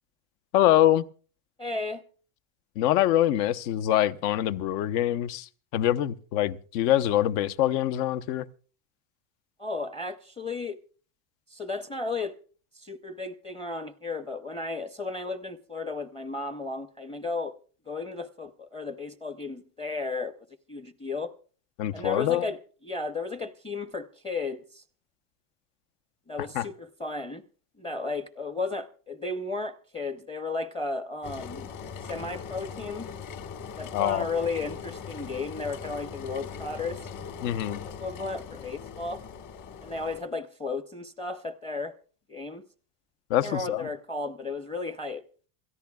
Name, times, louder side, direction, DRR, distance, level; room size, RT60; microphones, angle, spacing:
voice 1, 0.5-1.0 2.7-8.5 21.8-22.5 26.5-26.7 33.9-34.3 37.4-37.8 43.3-43.9, left 12 dB, 70° left, 1.1 m, -24 dB
voice 2, 1.6-2.0 9.6-10.8 11.5-12.4 12.7-17.5 17.9-20.3 20.7-21.3 21.9-24.8 26.3-27.4 27.8-31.7 32.0-33.1 33.8-37.1 38.0-39.2 39.8-41.9 42.3-42.6 43.4-45.2, left 3 dB, 10° left, 0.7 m, -34 dB
Engine, 31.2-40.2, left 6 dB, 35° left, 1.7 m, -40 dB
28.0 x 14.0 x 2.4 m
supercardioid pair, 130°, 49 cm